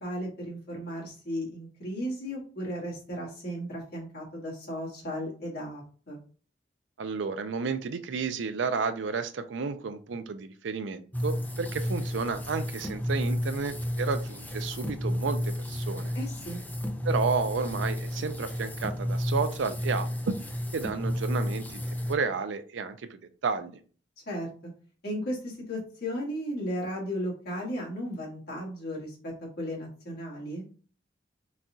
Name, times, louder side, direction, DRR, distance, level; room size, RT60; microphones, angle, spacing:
voice 1, 0.0-6.2 16.1-16.6 24.2-24.5 25.0-30.7, equal, 60° left, -3 dB, 1.7 m, -35 dB
voice 2, 7.0-16.1 17.0-20.3 20.7-23.8, right 5 dB, 75° right, 11 dB, 0.4 m, -32 dB
sound 1, 11.1-22.2, equal, 10° left, 0.5 m, -32 dB
4.1 x 2.4 x 3.7 m, 0.41 s
head